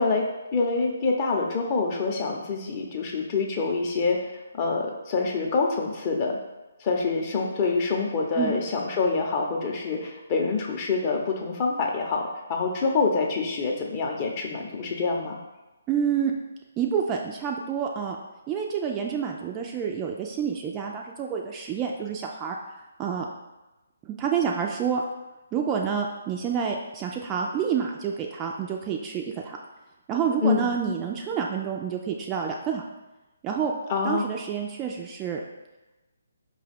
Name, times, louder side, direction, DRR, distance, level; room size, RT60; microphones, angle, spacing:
voice 1, 0.0-4.2 4.5-6.4 6.8-15.4 30.4-30.7 33.9-34.2, left 4 dB, 30° left, 0 dB, 0.7 m, -26 dB
voice 2, 15.9-16.3 16.8-18.2 18.5-22.6 23.0-23.3 24.0-25.0 25.5-29.6 30.1-32.8 33.4-33.7 34.0-35.4, right 7 dB, 20° right, 0 dB, 0.3 m, -28 dB
4.8 x 2.3 x 3.4 m, 1.1 s
figure-of-eight pair, 145°, 0 cm